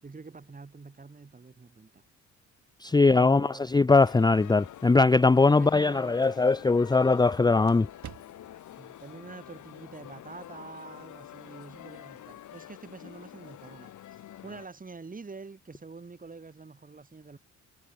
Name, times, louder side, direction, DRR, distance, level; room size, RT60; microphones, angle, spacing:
voice 1, 0.0-2.0 3.0-3.7 5.4-6.3 8.8-17.4, right 4 dB, 25° right, 7.1 m, -46 dB
voice 2, 2.8-7.9, left 3 dB, 15° left, 0.7 m, -21 dB
sound 1, 3.5-8.8, right 10 dB, 65° right, 5.2 m, -54 dB
sound 2, 3.9-14.7, left 12 dB, 75° left, 4.7 m, -47 dB
cardioid pair, 90°, 30 cm